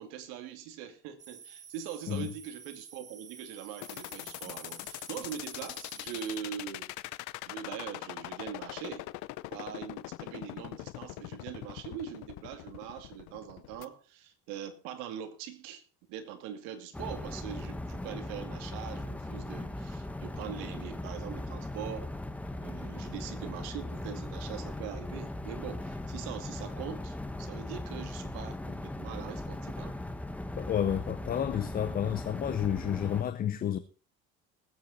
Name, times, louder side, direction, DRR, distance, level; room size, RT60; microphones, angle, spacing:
voice 1, 0.0-6.9 7.4-9.0 9.5-15.8 16.1-22.1 22.6-30.0, right 9 dB, 85° right, 2.5 m, -42 dB
sound 1, 1.2-6.4, right 6 dB, 25° right, 1.2 m, -51 dB
sound 2, 3.8-13.8, left 19 dB, 70° left, 0.8 m, -41 dB
sound 3, 16.9-33.2, left 1 dB, 5° left, 1.0 m, -39 dB
voice 2, 30.6-33.8, left 10 dB, 30° left, 0.7 m, -30 dB
20.0 x 8.4 x 4.2 m
cardioid pair, 145°, 30 cm